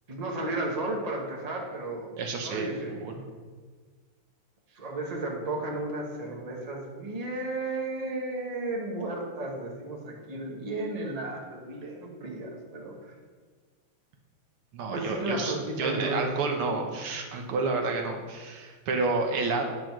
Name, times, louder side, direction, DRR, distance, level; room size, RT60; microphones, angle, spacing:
voice 1, 0.1-2.1 2.4-3.0 4.7-13.1 14.9-16.3, right 2 dB, 20° right, -1 dB, 1.2 m, -33 dB
voice 2, 2.2-3.2 14.7-19.6, right 3 dB, 80° right, 3 dB, 2.0 m, -30 dB
9.6 x 5.1 x 6.0 m, 1.5 s
omnidirectional pair, 2.4 m